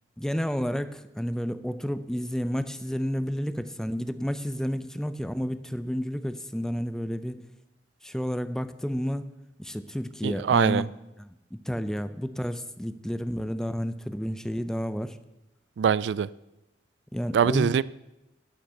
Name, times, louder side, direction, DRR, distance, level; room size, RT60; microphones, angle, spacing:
voice 1, 0.2-7.4 8.0-9.2 9.6-10.9 11.2-15.2 17.1-17.8, equal, 5° left, 12 dB, 0.5 m, -31 dB
voice 2, 10.2-10.8 15.8-16.3 17.3-17.8, right 7 dB, 85° right, 20 dB, 0.3 m, -23 dB
12.0 x 6.5 x 7.8 m, 0.92 s
head